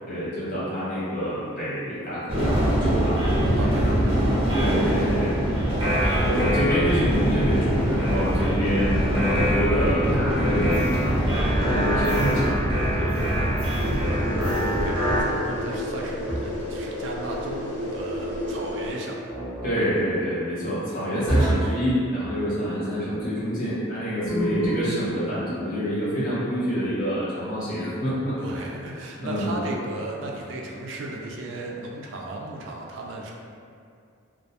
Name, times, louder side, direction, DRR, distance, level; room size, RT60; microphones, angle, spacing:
voice 1, 0.1-3.3 4.5-5.4 6.1-12.5 13.0-13.2 19.6-28.4 29.2-29.5, equal, 40° left, -11 dB, 0.8 m, -27 dB
sound 1, 2.3-15.2, equal, 25° right, 0.6 m, -23 dB
voice 2, 3.5-4.5 4.8-5.2 6.2-6.5 11.9-12.3 14.6-15.0 15.2-19.2 28.4-33.3, right 2 dB, 60° right, -1 dB, 0.3 m, -35 dB
sound 2, 13.8-19.0, left 1 dB, 85° left, 0.6 m, -31 dB
sound 3, 16.3-16.8 19.3-19.8 21.3-21.8 24.3-25.0, right 1 dB, 10° left, 0.9 m, -26 dB
2.3 x 2.2 x 2.7 m, 2.3 s
head